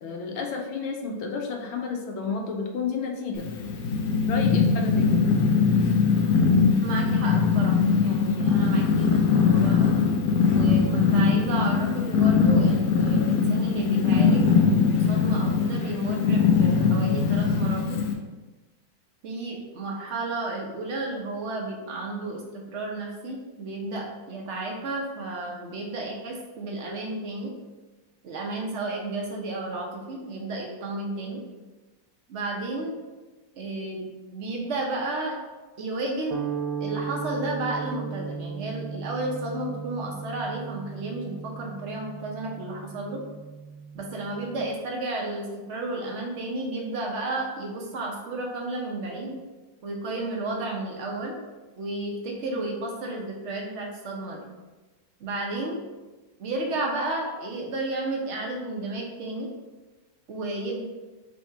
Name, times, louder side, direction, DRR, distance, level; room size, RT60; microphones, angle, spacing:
voice 1, 0.0-3.5 4.3-5.2, left 5 dB, 90° left, 2 dB, 1.5 m, -31 dB
Purr, 3.4-18.1, left 5 dB, 65° left, 1.0 m, -21 dB
voice 2, 6.8-9.9 10.5-18.0 19.2-27.5 28.2-31.4 32.3-33.0 33.6-34.1 34.3-35.4 35.8-36.4 36.8-43.2 43.9-49.4 49.8-51.3 51.8-54.4 55.2-55.8 56.4-59.5 60.3-60.8, right 2 dB, 60° right, -1 dB, 0.7 m, -32 dB
sound 1, 36.3-44.7, right 6 dB, 85° right, 1.4 m, -36 dB
4.1 x 2.8 x 4.5 m, 1.2 s
omnidirectional pair, 2.2 m